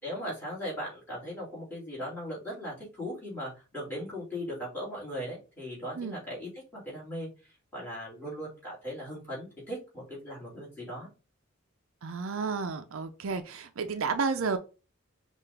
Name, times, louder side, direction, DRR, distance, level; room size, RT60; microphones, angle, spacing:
voice 1, 0.0-7.3 7.7-11.1, equal, 10° left, -6 dB, 2.5 m, -38 dB
voice 2, 12.0-14.6, right 4 dB, 70° right, 9 dB, 0.5 m, -31 dB
5.7 x 2.5 x 3.4 m, 0.32 s
head